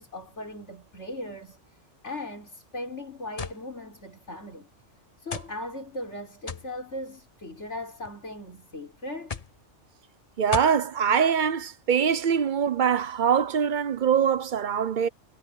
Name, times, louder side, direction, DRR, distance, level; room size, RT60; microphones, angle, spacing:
voice 1, 0.0-1.8 2.0-4.7 5.2-9.4, left 1 dB, 70° left, 5.1 m, -38 dB
sound 1, 3.4-3.6 4.5-4.6 5.3-5.5 6.5-6.7 7.7-8.1 9.3-9.6 10.5-10.8, left 5 dB, 35° left, 0.9 m, -34 dB
voice 2, 10.4-15.1, right 7 dB, 50° right, 0.7 m, -23 dB
omnidirectional pair, 1.2 m